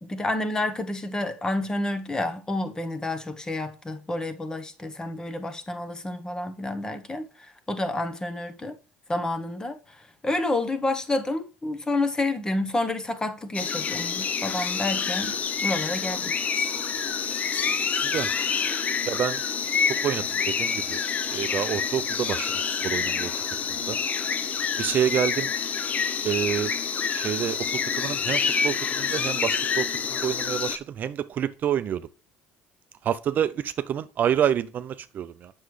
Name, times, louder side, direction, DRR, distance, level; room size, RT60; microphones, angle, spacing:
voice 1, 0.0-7.3 7.7-8.8 9.1-9.8 10.2-16.4, left 2 dB, 15° left, 1.0 m, -29 dB
sound 1, 13.5-30.8, left 6 dB, 35° left, 0.6 m, -27 dB
voice 2, 19.1-19.4 20.0-21.0 21.3-22.5 22.8-23.3 23.9-24.0 24.8-25.5 26.2-26.7 27.1-27.6 27.9-29.9 30.1-32.0 33.0-35.5, right 9 dB, 45° right, 0.4 m, -27 dB
8.0 x 6.2 x 3.2 m
supercardioid pair, 100°, 4 cm